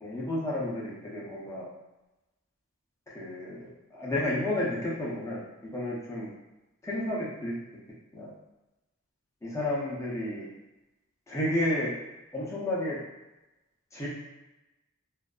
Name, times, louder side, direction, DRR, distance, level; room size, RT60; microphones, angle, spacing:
voice 1, 0.0-1.7 3.1-5.4 5.7-6.3 6.8-7.5 8.1-8.3 9.4-10.5 11.3-11.9 12.3-13.0 13.9-14.1, left 1 dB, 15° left, -7 dB, 0.5 m, -31 dB
2.5 x 2.4 x 2.2 m, 1.0 s
head